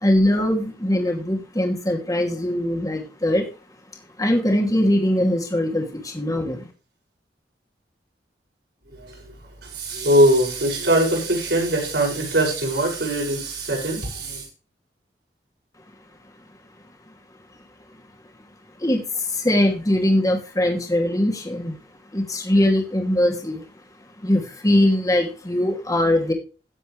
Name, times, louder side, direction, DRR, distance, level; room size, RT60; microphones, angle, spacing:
voice 1, 0.0-3.5 4.2-6.7 18.8-21.8 22.1-23.6 24.2-26.3, left 1 dB, 20° left, 2 dB, 2.7 m, -21 dB
voice 2, 8.9-9.3 9.6-14.4, right 1 dB, 75° right, 0 dB, 6.7 m, -21 dB
16.5 x 7.7 x 3.3 m, 0.35 s
head